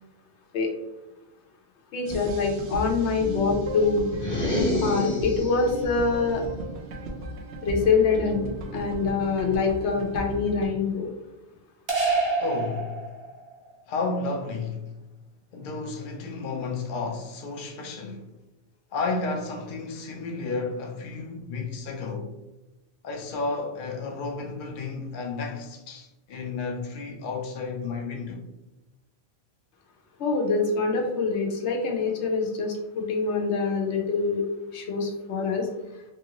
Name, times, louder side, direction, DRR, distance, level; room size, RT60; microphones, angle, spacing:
voice 1, 1.9-4.1 4.8-6.4 7.6-8.4 8.7-11.1 30.2-34.4 34.7-35.7, left 4 dB, 90° left, 1.0 m, -25 dB
sound 1, 2.1-10.7, right 1 dB, 80° right, 0.9 m, -35 dB
sound 2, 4.1-5.8, left 1 dB, 20° left, 0.7 m, -27 dB
sound 3, 11.9-13.6, right 3 dB, 30° right, 0.7 m, -26 dB
voice 2, 12.4-13.1 13.9-14.9 15.5-18.3 18.9-22.3 23.0-28.4, left 3 dB, 55° left, 0.7 m, -32 dB
3.2 x 2.5 x 2.9 m
omnidirectional pair, 1.1 m